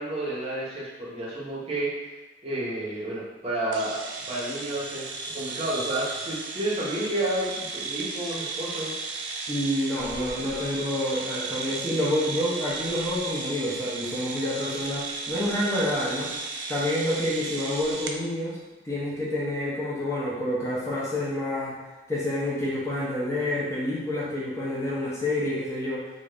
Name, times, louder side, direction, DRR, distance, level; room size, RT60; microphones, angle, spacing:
voice 1, 0.0-1.9 2.4-4.0 4.3-9.1, right 1 dB, 35° right, -6 dB, 0.8 m, -30 dB
sound 1, 3.7-18.2, right 4 dB, 75° right, 0.3 m, -35 dB
voice 2, 9.5-16.3 16.7-18.6 18.8-21.7 22.1-26.0, left 1 dB, 15° left, -7 dB, 0.6 m, -28 dB
2.5 x 2.5 x 3.3 m, 1.2 s
head